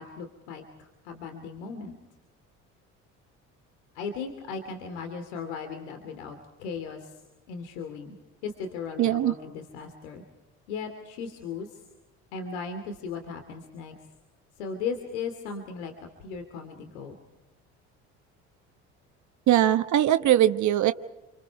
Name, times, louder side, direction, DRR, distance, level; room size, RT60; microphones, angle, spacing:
voice 1, 0.0-1.9 3.9-7.2 7.5-8.2 8.4-10.2 10.7-11.8 12.3-13.9 14.6-15.9 16.2-17.2, left 5 dB, 85° left, 6 dB, 2.9 m, -37 dB
voice 2, 9.0-9.3 19.5-20.9, right 12 dB, 55° right, 9 dB, 1.2 m, -21 dB
29.0 x 25.5 x 4.8 m, 1.0 s
supercardioid pair, 75°, 34 cm